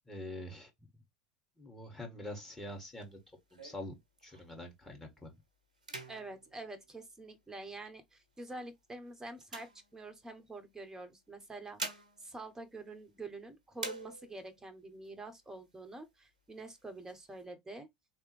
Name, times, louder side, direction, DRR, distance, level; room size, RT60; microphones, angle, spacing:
voice 1, 0.1-0.7 1.6-3.2 3.5-3.9 4.2-5.3, left 1 dB, 10° left, 1.8 m, -45 dB
sound 1, 2.5-4.7 5.2-5.4 5.7-7.7 8.3-10.5 11.4-13.4 13.7-14.6 15.0-15.1 15.4-16.1 16.5-17.4, right 2 dB, 80° right, 0.9 m, -47 dB
voice 2, 6.1-11.8 12.2-17.9, right 2 dB, 10° right, 1.1 m, -47 dB
4.0 x 3.3 x 3.2 m
figure-of-eight pair, 75°, 4 cm